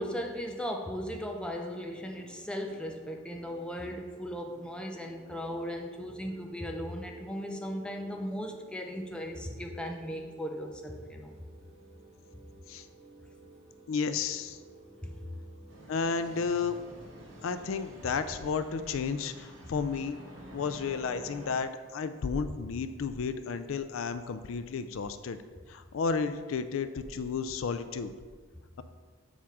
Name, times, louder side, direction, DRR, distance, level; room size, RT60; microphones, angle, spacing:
voice 1, 0.0-11.3 15.0-15.2, equal, 5° left, 2 dB, 0.6 m, -37 dB
sound 1, 1.7-17.8, right 1 dB, 30° right, 0.9 m, -54 dB
voice 2, 13.9-14.6 15.9-16.8 17.4-20.2 20.5-25.4 25.7-28.1, left 5 dB, 85° left, 11 dB, 0.4 m, -32 dB
sound 2, 15.7-21.6, right 1 dB, 70° right, 1.3 m, -49 dB
7.2 x 3.6 x 6.1 m, 1.5 s
head